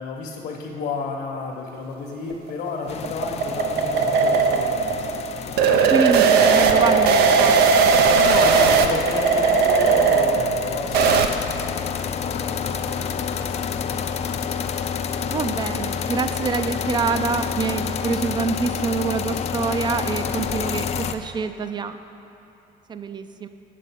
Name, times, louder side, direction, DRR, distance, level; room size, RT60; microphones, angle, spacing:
voice 1, 0.0-5.0 8.1-11.7 12.0-14.0, left 4 dB, 70° left, -1 dB, 1.0 m, -32 dB
sound 1, 2.3-11.3, right 5 dB, 75° right, 0.5 m, -18 dB
sound 2, 2.9-21.1, left 7 dB, 40° left, 0.4 m, -29 dB
voice 2, 5.9-7.9 15.3-22.0 22.9-23.5, right 4 dB, 25° right, 10 dB, 0.4 m, -26 dB
8.3 x 5.2 x 5.7 m, 2.8 s
cardioid pair, 110°, 17 cm